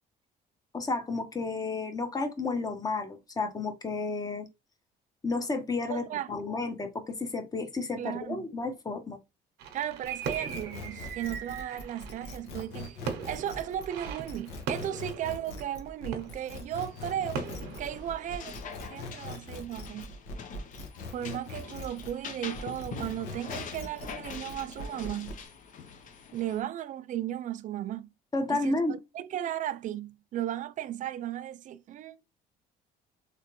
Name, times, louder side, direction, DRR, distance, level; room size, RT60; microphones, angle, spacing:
voice 1, 0.7-4.5 5.2-9.2 28.3-29.0, left 3 dB, 20° left, 0.9 m, -32 dB
voice 2, 5.9-6.3 8.0-8.4 9.7-13.0 13.2-17.4 17.8-18.6 18.9-20.2 21.1-25.4 26.3-28.1 28.5-32.2, right 11 dB, 50° right, 0.4 m, -35 dB
sound 1, 9.6-19.0 19.4-19.6, right 6 dB, 90° right, 0.8 m, -40 dB
sound 2, 10.0-22.2 22.5-25.4, left 2 dB, 85° left, 1.0 m, -42 dB
sound 3, 16.8-26.6, left 6 dB, 50° left, 0.7 m, -44 dB
3.2 x 2.9 x 2.9 m
cardioid pair, 110°, 17 cm